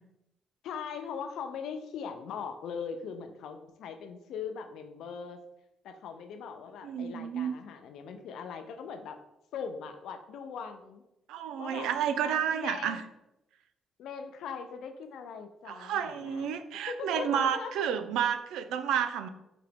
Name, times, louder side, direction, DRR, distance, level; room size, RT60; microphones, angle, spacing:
voice 1, 0.6-5.4 5.8-9.2 9.5-11.0 11.6-11.9 12.2-13.0 14.0-16.5 16.9-17.7, left 6 dB, 80° left, 7 dB, 0.5 m, -40 dB
voice 2, 6.8-7.5 11.3-13.0 15.7-19.3, right 8 dB, 85° right, 10 dB, 0.4 m, -30 dB
4.9 x 2.8 x 3.5 m, 0.90 s
cardioid pair, 90°, 0 cm